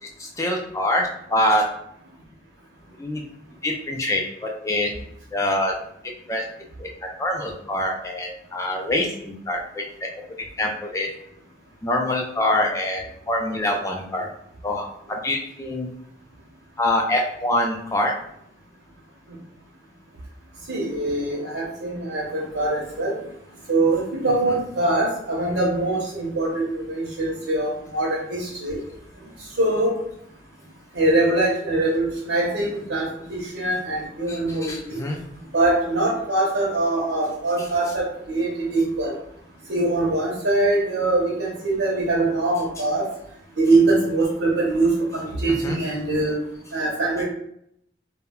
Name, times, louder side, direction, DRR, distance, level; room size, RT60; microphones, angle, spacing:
voice 1, 0.2-1.6 3.0-3.2 3.6-4.9 5.3-5.7 6.3-6.4 6.8-6.9 7.2-9.8 10.6-11.1 11.8-14.3 14.6-15.9 16.8-18.1 34.3-35.2 37.6-37.7 45.6-45.8, left 1 dB, 15° left, 0 dB, 0.4 m, -25 dB
voice 2, 20.7-23.1 23.7-28.8 29.6-29.9 31.0-33.0 33.3-35.0 35.5-39.1 39.7-43.0 43.6-46.3 46.7-47.2, right 2 dB, 75° right, -3 dB, 0.7 m, -23 dB
2.2 x 2.1 x 3.6 m, 0.73 s
head